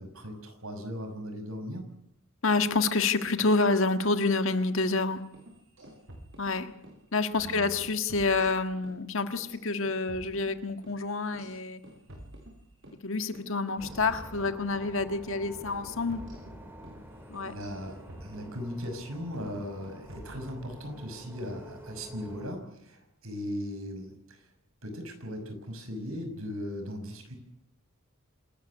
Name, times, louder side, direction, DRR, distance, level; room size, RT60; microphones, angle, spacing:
voice 1, 0.0-1.9 7.4-7.8 17.4-24.4 24.8-27.4, equal, 80° right, 6 dB, 6.1 m, -38 dB
voice 2, 2.4-5.2 6.4-6.7 7.1-11.8 13.0-16.2 17.3-17.5, left 3 dB, 65° left, 9 dB, 1.7 m, -28 dB
sound 1, 5.2-7.0 7.3-7.5 7.8-9.0 9.3-13.0 13.3-13.5 13.8-15.0 15.3-15.5 15.8-19.0 19.3-19.6 19.8-21.0, equal, 60° right, 6.4 m, -50 dB
sound 2, 13.8-22.5, equal, 10° right, 3.9 m, -48 dB
27.0 x 13.5 x 9.9 m, 0.78 s
head